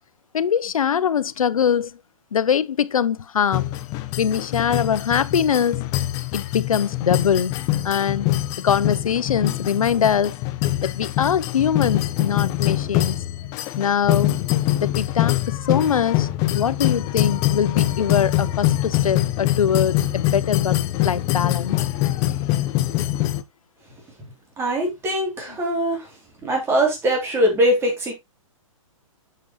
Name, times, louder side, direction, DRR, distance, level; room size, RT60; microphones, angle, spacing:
voice 1, 0.3-1.9 2.3-3.6 4.2-5.9 6.3-7.5 7.8-8.3 8.6-10.4 10.8-13.2 13.8-14.4 14.8-16.3 16.5-21.8, left 8 dB, 85° left, 0.7 m, -22 dB
sound 1, 3.5-23.4, left 14 dB, 20° left, 0.4 m, -24 dB
voice 2, 24.6-26.1 26.4-28.1, right 1 dB, 15° right, 3.1 m, -21 dB
7.6 x 6.7 x 3.1 m
hypercardioid pair, 145°, 17 cm